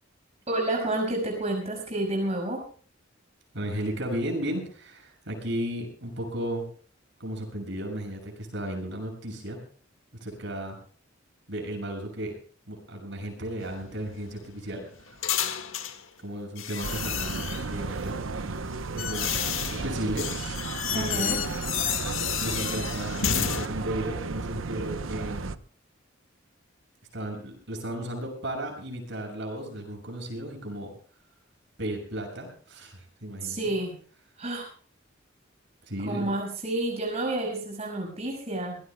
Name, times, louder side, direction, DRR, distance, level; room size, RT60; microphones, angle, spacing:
voice 1, 0.5-2.6 20.9-21.4 33.4-33.9 34.4-34.7 36.0-38.8, right 1 dB, 35° right, 0 dB, 5.9 m, -29 dB
voice 2, 3.5-6.7 7.2-9.6 10.2-10.8 11.5-12.3 12.7-15.2 16.2-18.6 19.0-19.3 19.7-20.3 20.9-21.5 22.4-25.5 27.1-30.9 31.8-33.7 35.9-36.3, right 1 dB, 65° right, 2 dB, 6.7 m, -34 dB
sound 1, 13.6-16.0 16.6-17.8 18.5-23.7, left 9 dB, 90° left, 1.9 m, -31 dB
sound 2, 16.8-25.6, right 4 dB, 85° right, 0.8 m, -34 dB
24.5 x 19.5 x 2.3 m, 0.43 s
head